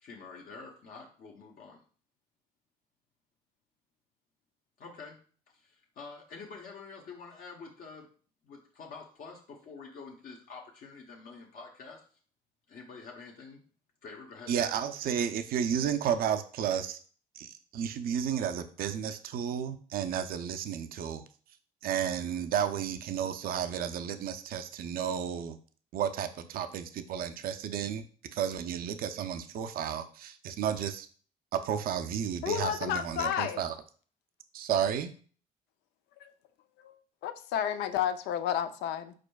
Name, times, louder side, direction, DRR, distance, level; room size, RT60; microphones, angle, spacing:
voice 1, 0.0-1.8 4.8-5.2 5.5-8.1 8.4-12.0 12.7-13.6 14.0-14.5, left 4 dB, 55° left, -1 dB, 0.9 m, -47 dB
voice 2, 14.5-17.0 17.3-21.2 21.8-25.6 25.9-28.1 28.3-31.1 31.5-33.7 34.5-35.1, right 8 dB, 60° right, 9 dB, 0.5 m, -32 dB
voice 3, 32.4-33.6 36.2-36.3 36.8-37.0 37.2-39.1, left 9 dB, 85° left, 10 dB, 0.5 m, -31 dB
5.0 x 4.3 x 2.3 m, 0.43 s
cardioid pair, 110°, 17 cm